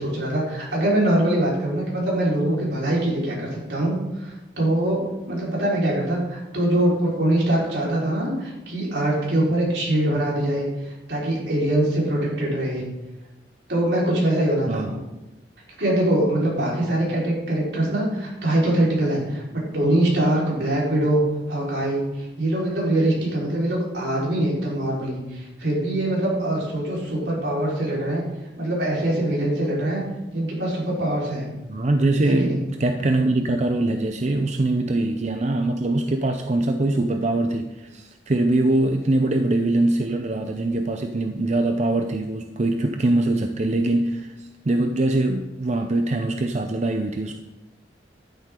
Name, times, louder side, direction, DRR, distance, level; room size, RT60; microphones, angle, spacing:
voice 1, 0.0-12.9 13.7-15.0 15.8-21.2 21.5-28.2 28.6-30.0 30.3-31.4 32.2-32.6, right 1 dB, 80° right, -4 dB, 4.5 m, -23 dB
voice 2, 31.7-47.4, right 2 dB, 40° right, 6 dB, 0.6 m, -23 dB
11.5 x 10.5 x 3.8 m, 1.0 s
head